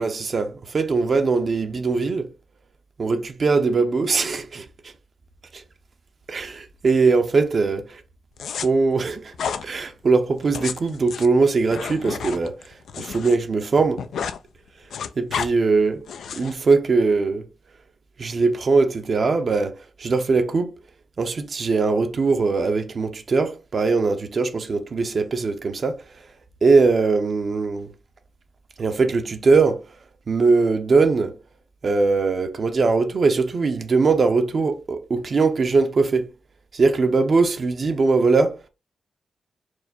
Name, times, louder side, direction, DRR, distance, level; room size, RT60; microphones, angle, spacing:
voice 1, 0.0-2.3 3.0-4.7 5.5-5.6 6.3-8.0 8.6-9.3 9.6-14.0 15.2-16.0 16.4-17.5 18.2-20.7 21.2-26.0 26.6-27.9 28.8-29.8 30.3-31.4 31.8-36.3 36.7-38.6, right 4 dB, 45° right, 0.8 m, -21 dB
sound 1, 8.4-8.7 9.3-9.6 10.4-13.4 13.7-14.4 14.7-15.5 16.1-16.5, left 7 dB, 80° left, 0.4 m, -31 dB
4.6 x 2.2 x 4.2 m
cardioid pair, 100°, 0 cm